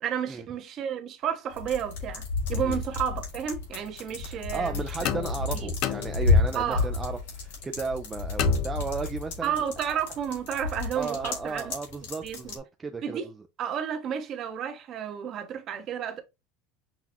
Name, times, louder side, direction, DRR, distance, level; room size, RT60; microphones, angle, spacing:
voice 1, 0.0-5.1 5.6-5.7 6.5-6.9 9.4-11.7 12.2-12.5 13.0-13.3 13.6-16.2, right 8 dB, 50° right, 1.0 m, -32 dB
sound 1, 1.5-12.6, left 3 dB, 90° left, 1.9 m, -30 dB
voice 2, 4.3-9.6 10.9-13.4, right 4 dB, 20° right, 0.5 m, -35 dB
sound 2, 5.0-6.7 8.4-9.3, left 11 dB, 60° left, 0.4 m, -34 dB
5.7 x 2.4 x 2.9 m
supercardioid pair, 105°, 0 cm